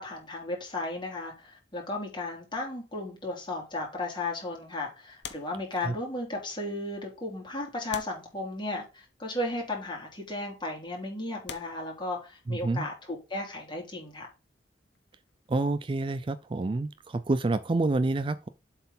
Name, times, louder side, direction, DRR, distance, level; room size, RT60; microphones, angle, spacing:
voice 1, 0.0-14.3, left 2 dB, 25° left, 3.4 m, -35 dB
sound 1, 5.2-6.3 7.1-7.2 7.9-9.0 10.0-10.2 10.8-10.9 11.4-12.7 14.6-16.4 16.6-16.8, left 7 dB, 70° left, 1.1 m, -47 dB
voice 2, 12.5-12.9 15.5-18.5, right 2 dB, 30° right, 0.4 m, -28 dB
7.8 x 4.4 x 5.4 m
head